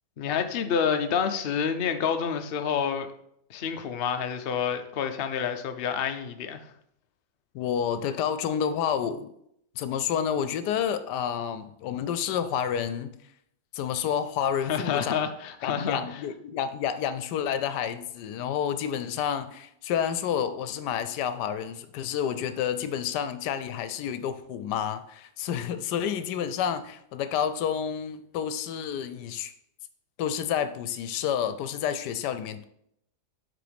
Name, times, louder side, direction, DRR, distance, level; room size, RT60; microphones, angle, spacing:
voice 1, 0.2-3.1 3.5-6.6 14.7-16.2, left 7 dB, 65° left, 7 dB, 0.6 m, -28 dB
voice 2, 7.5-9.3 9.8-13.1 13.7-15.2 15.6-29.5 30.2-32.6, left 8 dB, 85° left, 12 dB, 1.2 m, -29 dB
7.7 x 3.9 x 5.1 m, 0.74 s
omnidirectional pair, 1.8 m